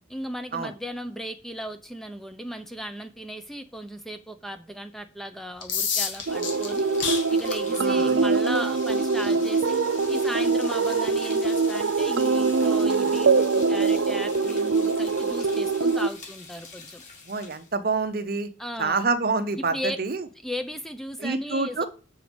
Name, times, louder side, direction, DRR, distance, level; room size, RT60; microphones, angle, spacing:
voice 1, 0.1-6.9 7.3-9.8 10.1-17.0 18.6-19.1 19.7-20.0 20.4-21.8, equal, ahead, 0.7 m, -36 dB
sound 1, 5.5-17.3, left 6 dB, 70° left, 1.9 m, -37 dB
sound 2, 6.0-17.7, left 4 dB, 40° left, 3.3 m, -46 dB
sound 3, 6.3-16.1, right 4 dB, 80° right, 0.6 m, -23 dB
voice 2, 7.7-8.2 17.3-18.5 18.8-20.2 21.2-21.9, right 4 dB, 45° right, 0.8 m, -27 dB
7.7 x 6.2 x 5.2 m
head